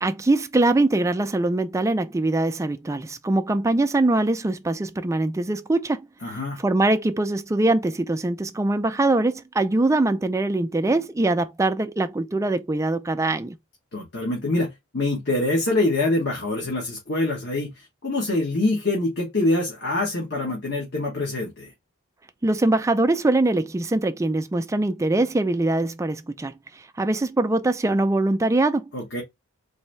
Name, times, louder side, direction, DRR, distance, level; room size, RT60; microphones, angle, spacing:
voice 1, 0.0-6.1 6.6-13.6 22.4-28.9, right 2 dB, 15° right, 0.3 m, -22 dB
voice 2, 6.2-6.6 13.9-21.7 28.9-29.2, left 2 dB, 50° left, 1.2 m, -25 dB
4.0 x 2.6 x 3.2 m
head